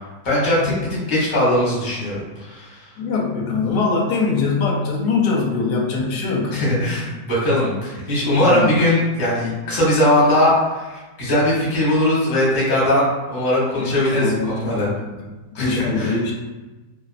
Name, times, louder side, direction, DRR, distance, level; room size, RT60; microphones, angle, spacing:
voice 1, 0.2-2.8 6.5-14.9 15.5-16.1, left 1 dB, 35° left, -6 dB, 0.9 m, -20 dB
voice 2, 3.0-6.7 8.4-8.7 13.8-15.2 15.5-16.3, left 4 dB, 90° left, -2 dB, 1.2 m, -22 dB
2.5 x 2.4 x 2.3 m, 1.2 s
omnidirectional pair, 1.7 m